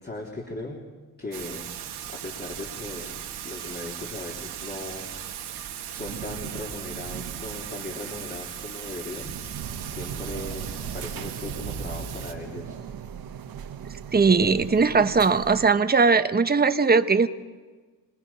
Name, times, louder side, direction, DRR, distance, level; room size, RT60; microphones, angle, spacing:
voice 1, 0.0-0.8 1.2-3.1 3.4-5.1 5.9-9.4 9.8-12.8, left 2 dB, 25° left, -1 dB, 3.4 m, -38 dB
Thunder / Rain, 1.3-12.3, right 9 dB, 80° right, 1.8 m, -36 dB
sound 1, 9.6-15.7, right 8 dB, 65° right, 1.3 m, -39 dB
voice 2, 14.1-17.3, right 4 dB, 25° right, 10 dB, 1.1 m, -19 dB
27.0 x 19.5 x 5.7 m, 1.4 s
cardioid pair, 80°, 38 cm